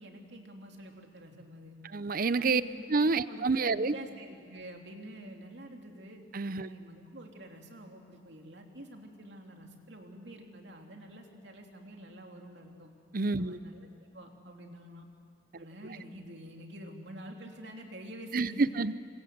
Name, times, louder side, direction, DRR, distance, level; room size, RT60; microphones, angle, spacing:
voice 1, 0.0-1.7 2.4-2.9 3.3-6.2 6.6-12.9 13.4-15.1 15.6-18.8, right 1 dB, 65° right, 2 dB, 3.1 m, -47 dB
voice 2, 1.9-2.6 2.9-3.9 6.3-6.7 13.1-13.6 18.3-18.9, right 4 dB, 50° right, 15 dB, 0.7 m, -28 dB
27.0 x 25.5 x 7.9 m, 2.2 s
head